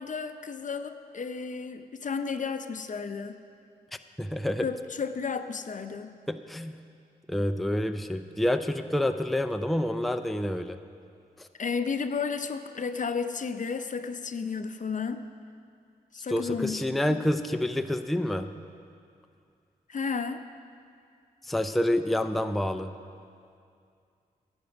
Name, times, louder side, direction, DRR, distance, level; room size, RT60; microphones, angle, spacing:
voice 1, 0.0-3.4 4.6-6.1 11.6-15.2 16.1-17.2 19.9-20.4, left 5 dB, 50° left, 9 dB, 0.6 m, -33 dB
voice 2, 4.2-4.7 6.3-6.8 7.3-10.8 11.4-11.5 16.3-18.5 21.4-22.9, left 1 dB, ahead, 8 dB, 0.5 m, -28 dB
11.5 x 8.1 x 6.0 m, 2.4 s
supercardioid pair, 45°, 17 cm